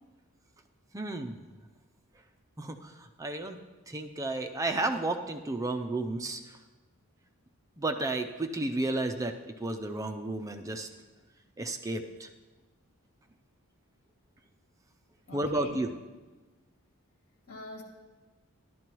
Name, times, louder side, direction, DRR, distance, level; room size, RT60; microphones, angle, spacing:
voice 1, 0.9-1.4 2.6-3.6 3.9-6.6 7.8-10.9 11.6-12.3 15.3-16.0, right 2 dB, 15° right, 6 dB, 0.4 m, -32 dB
voice 2, 15.3-15.9 17.5-17.8, left 2 dB, 80° left, 0 dB, 1.9 m, -44 dB
12.5 x 11.5 x 3.0 m, 1.2 s
head